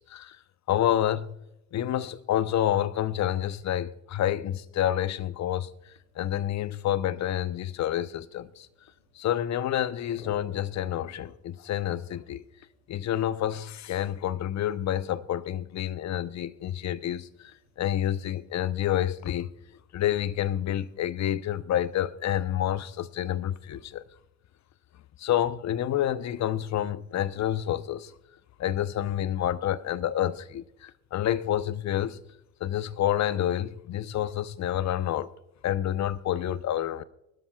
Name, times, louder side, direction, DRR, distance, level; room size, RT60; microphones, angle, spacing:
voice 1, 0.7-1.3 1.7-5.7 6.2-8.7 9.2-12.4 12.9-19.5 19.9-24.0 25.2-28.1 28.6-32.2 32.6-35.3 35.6-37.0, left 11 dB, 45° left, 0.7 m, -28 dB
sound 1, 5.5-18.4, left 1 dB, 80° left, 5.6 m, -58 dB
23.5 x 12.5 x 2.3 m
hypercardioid pair, 55°, 39 cm